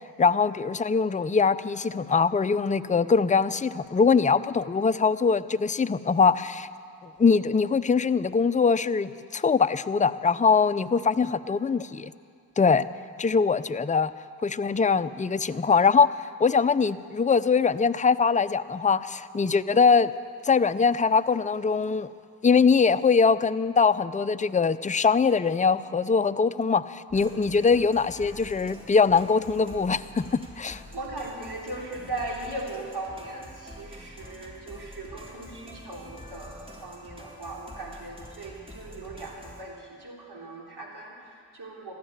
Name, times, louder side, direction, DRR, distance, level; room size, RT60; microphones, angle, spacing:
voice 1, 0.2-6.7 7.0-12.1 12.6-12.8 13.2-14.1 14.4-20.1 20.4-22.1 22.4-30.8, left 5 dB, 15° left, 13 dB, 0.5 m, -22 dB
voice 2, 11.2-11.5 12.7-12.8 27.1-27.2 30.6-41.9, right 2 dB, 60° right, -1 dB, 3.6 m, -39 dB
sound 1, 27.1-39.6, left 1 dB, 10° right, 3.5 m, -46 dB
15.0 x 11.0 x 8.1 m, 2.3 s
supercardioid pair, 40°, 45 cm